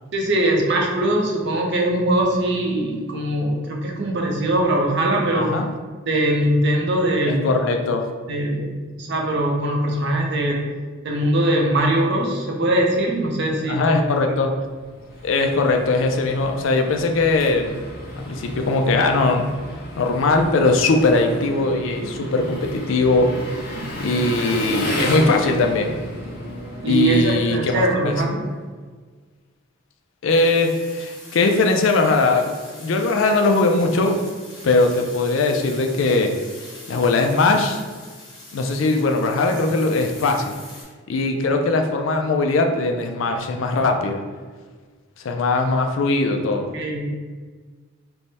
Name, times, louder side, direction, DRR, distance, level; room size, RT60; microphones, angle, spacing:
voice 1, 0.1-5.6 6.1-7.5 8.3-8.7 9.0-10.7 11.0-14.0 26.8-28.5 46.7-47.1, right 1 dB, 55° right, 0 dB, 0.6 m, -21 dB
voice 2, 5.3-5.7 7.3-8.1 13.7-14.5 15.2-17.8 18.2-19.5 20.0-23.3 24.0-26.0 26.9-28.1 30.2-32.5 32.8-34.2 34.6-36.3 36.9-37.8 38.5-40.4 41.1-44.2 45.2-46.7, left 3 dB, 65° left, 4 dB, 0.4 m, -20 dB
Engine, 14.6-28.1, left 1 dB, 50° left, 0.8 m, -33 dB
sound 1, 30.3-40.8, left 2 dB, 20° left, 1.1 m, -43 dB
3.3 x 2.1 x 4.0 m, 1.5 s
head